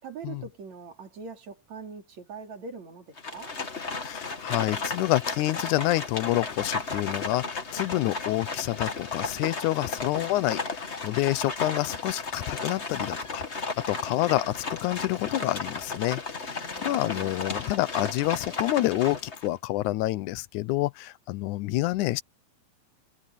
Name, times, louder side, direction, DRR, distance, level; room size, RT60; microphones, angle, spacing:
voice 1, 0.0-3.6 16.5-17.4, right 5 dB, 65° right, 4.6 m, -42 dB
Livestock farm animals working animals, 3.2-19.5, left 4 dB, 30° left, 1.6 m, -34 dB
voice 2, 4.0-22.2, left 17 dB, 90° left, 2.2 m, -28 dB
omnidirectional pair, 3.4 m